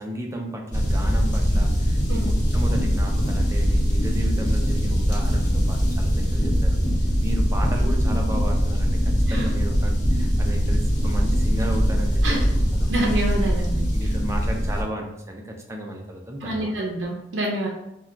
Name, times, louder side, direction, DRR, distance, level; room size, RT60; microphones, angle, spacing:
voice 1, 0.0-12.9 13.9-16.7, equal, 15° right, 1 dB, 0.4 m, -34 dB
sound 1, 0.7-14.8, equal, 45° left, 0.8 m, -22 dB
voice 2, 12.9-14.1 16.4-17.7, right 1 dB, 80° right, -3 dB, 0.4 m, -27 dB
2.2 x 2.2 x 3.7 m, 0.88 s
head